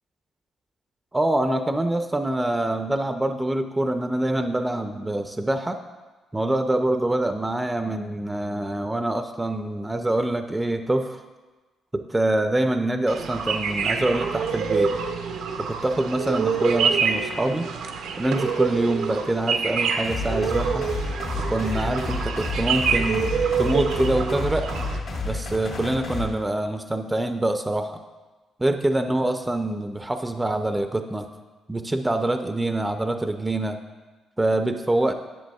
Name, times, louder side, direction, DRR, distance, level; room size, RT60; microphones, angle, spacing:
voice 1, 1.1-5.8 6.3-11.2 11.9-14.9 15.6-17.7 18.2-20.9 21.4-23.3 23.6-24.7 25.2-28.0 28.6-31.3 31.7-33.8 34.4-35.1, right 1 dB, 15° right, 7 dB, 0.4 m, -25 dB
sound 1, 13.1-25.0, right 6 dB, 85° right, 0.6 m, -26 dB
sound 2, 20.0-26.2, left 2 dB, 65° left, 1.9 m, -30 dB
10.0 x 7.3 x 2.3 m, 1.2 s
cardioid pair, 90°, 0 cm